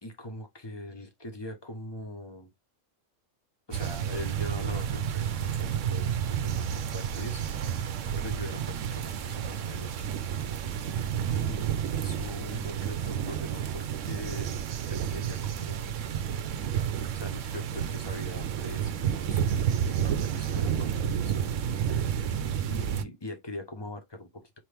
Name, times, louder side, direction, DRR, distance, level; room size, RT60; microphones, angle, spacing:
voice 1, 0.0-2.5 3.7-7.4 8.2-10.1 11.3-14.6 14.9-16.0 17.1-21.4 21.7-22.0 22.6-24.6, left 1 dB, 25° left, 1.0 m, -42 dB
sound 1, 3.7-23.0, right 8 dB, 90° right, 1.0 m, -30 dB
4.7 x 3.0 x 3.4 m
omnidirectional pair, 1.3 m